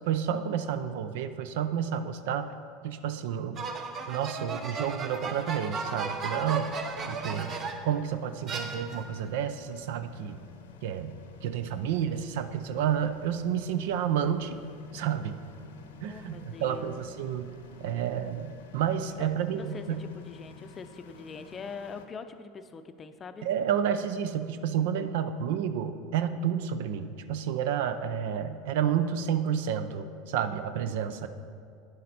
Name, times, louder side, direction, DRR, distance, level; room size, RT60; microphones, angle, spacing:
voice 1, 0.1-2.5 2.8-3.6 4.1-6.7 7.1-7.6 7.8-10.4 10.8-14.6 14.9-15.4 16.0-17.5 17.8-20.0 23.4-31.3, right 8 dB, 75° right, 11 dB, 0.5 m, -30 dB
sound 1, 3.6-8.0 8.5-9.2, right 4 dB, 35° right, 0.8 m, -35 dB
sound 2, 5.2-22.1, left 5 dB, 85° left, 0.8 m, -51 dB
voice 2, 16.0-17.0 19.1-19.3 19.6-23.5, left 5 dB, 30° left, 9 dB, 0.6 m, -43 dB
9.7 x 7.5 x 4.2 m, 2.4 s
hypercardioid pair, 100°, 0 cm